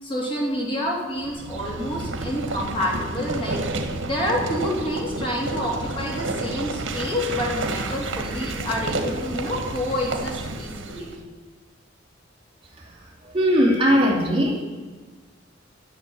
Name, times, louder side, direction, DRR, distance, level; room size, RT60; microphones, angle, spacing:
voice 1, 0.0-3.6 4.1-11.2, left 1 dB, 30° left, -2 dB, 3.5 m, -28 dB
sound 1, 1.2-11.2, right 2 dB, 75° right, 1.9 m, -30 dB
voice 2, 13.3-14.6, equal, 30° right, -3 dB, 2.5 m, -19 dB
12.5 x 7.0 x 9.8 m, 1.3 s
head